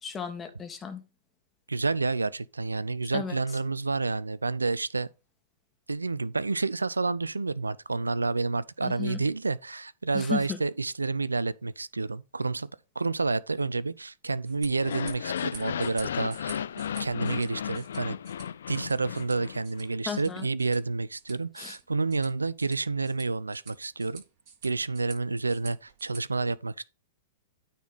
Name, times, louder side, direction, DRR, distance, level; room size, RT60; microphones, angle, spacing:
voice 1, 0.0-1.0 3.1-3.4 8.8-9.2 10.1-10.6 20.1-20.5 21.6-21.7, left 6 dB, 20° left, 1.6 m, -35 dB
voice 2, 1.7-5.1 5.9-12.7 13.0-16.6 17.0-18.2 18.7-24.2 24.6-26.8, right 3 dB, 90° right, 0.4 m, -29 dB
sound 1, 14.4-26.2, right 6 dB, 50° right, 5.4 m, -50 dB
sound 2, 14.7-19.9, left 9 dB, 70° left, 0.3 m, -34 dB
9.3 x 4.1 x 5.4 m
hypercardioid pair, 105°, 0 cm